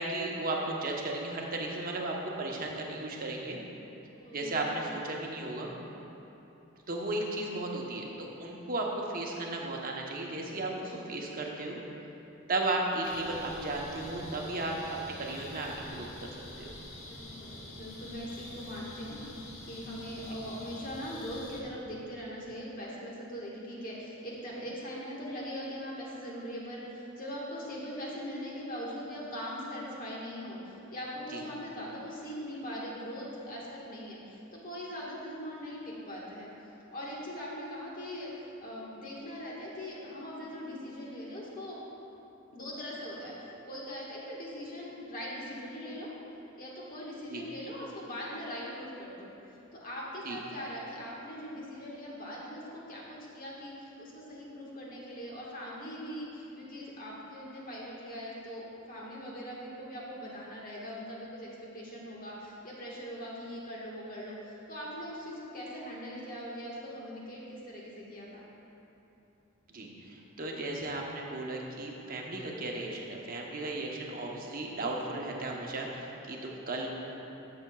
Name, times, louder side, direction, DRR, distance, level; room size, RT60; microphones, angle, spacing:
voice 1, 0.0-3.6 4.3-5.7 6.9-11.8 12.5-14.8 15.0-16.7 31.3-31.4 47.3-47.4 50.2-50.4 69.7-76.9, right 2 dB, 45° right, -1 dB, 0.9 m, -35 dB
voice 2, 4.2-4.7 10.6-11.1 17.0-19.2 19.7-36.5 36.9-41.8 42.5-46.1 46.6-49.3 49.7-68.4, equal, 45° left, -4 dB, 1.4 m, -41 dB
sound 1, 13.0-21.6, left 1 dB, 75° left, 1.1 m, -46 dB
12.0 x 6.7 x 2.3 m, 2.9 s
head